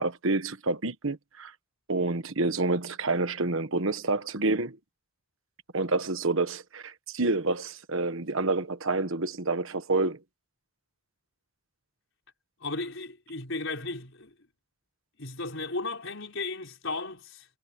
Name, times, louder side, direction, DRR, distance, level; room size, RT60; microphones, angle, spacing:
voice 1, 0.0-1.5 1.9-4.8 5.7-10.2, right 3 dB, 65° right, 1.3 m, -28 dB
voice 2, 12.6-14.3 15.2-17.5, left 3 dB, 60° left, 5.3 m, -35 dB
head